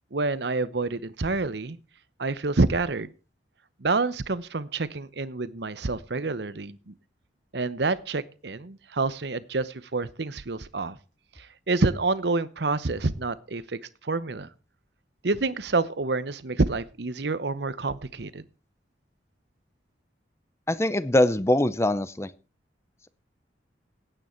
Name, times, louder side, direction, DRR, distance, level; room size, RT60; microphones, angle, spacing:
voice 1, 0.1-1.8 2.2-3.1 3.8-6.9 7.5-11.0 11.4-14.5 15.2-18.4, right 3 dB, 65° right, 16 dB, 0.8 m, -28 dB
voice 2, 20.7-22.3, left 1 dB, 15° left, 16 dB, 0.7 m, -23 dB
16.5 x 9.1 x 4.4 m, 0.35 s
head